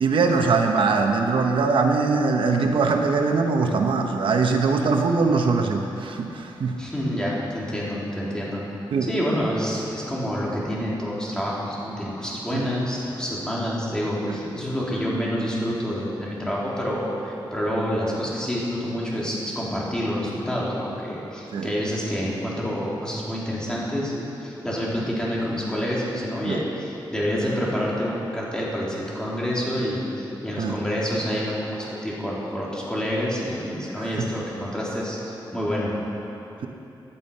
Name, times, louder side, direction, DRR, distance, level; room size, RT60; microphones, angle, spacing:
voice 1, 0.0-6.8 8.9-9.1 12.5-12.7 14.2-14.4 21.5-21.7 26.4-26.6 30.6-30.7 34.2-34.3, right 4 dB, 80° right, 3 dB, 1.1 m, -22 dB
voice 2, 6.8-8.6 9.0-35.9, equal, 10° left, -6 dB, 3.7 m, -28 dB
17.5 x 11.0 x 5.6 m, 3.0 s
wide cardioid pair, 110°, 9 cm